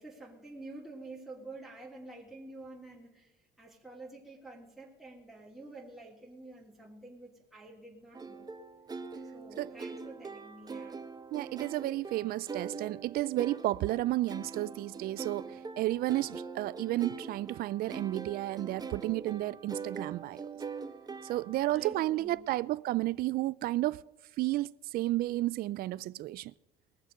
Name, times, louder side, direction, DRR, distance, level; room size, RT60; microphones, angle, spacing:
voice 1, 0.0-8.5 9.3-11.0 21.7-22.4, right 2 dB, ahead, 3.2 m, -49 dB
sound 1, 8.1-21.8, right 4 dB, 25° right, 1.1 m, -43 dB
voice 2, 11.3-20.5 21.2-24.0 24.4-26.5, right 16 dB, 65° right, 0.4 m, -32 dB
20.0 x 7.3 x 6.6 m
cardioid pair, 110°, 17 cm